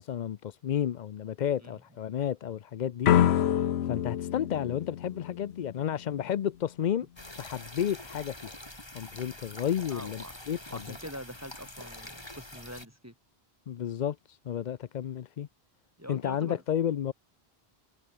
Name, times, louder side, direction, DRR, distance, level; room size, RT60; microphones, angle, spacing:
voice 1, 0.0-7.1 7.4-8.5 8.9-10.8 13.7-15.5 16.1-17.1, left 9 dB, 55° left, 0.6 m, -32 dB
sound 1, 3.0-5.9, left 10 dB, 90° left, 1.0 m, -26 dB
sound 2, 7.2-12.9, left 1 dB, 25° left, 3.4 m, -45 dB
voice 2, 9.9-10.4 10.7-13.1 16.0-16.6, equal, 15° right, 6.6 m, -44 dB
omnidirectional pair, 1.1 m